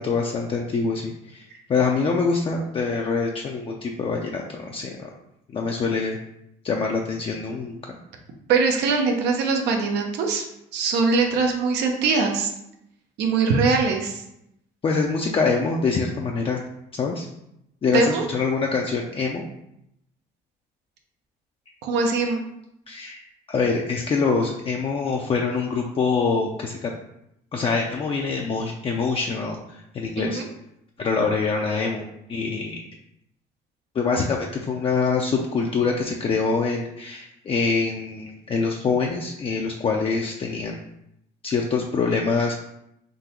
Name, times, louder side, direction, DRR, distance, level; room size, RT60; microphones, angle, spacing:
voice 1, 0.0-1.4 1.7-4.9 5.5-6.2 6.6-7.8 14.8-16.6 17.0-17.3 17.8-19.4 22.9-23.2 23.5-26.9 27.5-30.4 31.0-32.8 33.9-40.8 41.4-42.5, left 4 dB, 35° left, 0 dB, 0.5 m, -25 dB
voice 2, 8.5-10.4 10.7-12.5 13.2-14.2 17.9-18.2 21.8-22.5 30.2-30.5, right 4 dB, 80° right, 2 dB, 0.8 m, -22 dB
3.8 x 2.7 x 4.4 m, 0.81 s
cardioid pair, 110°, 17 cm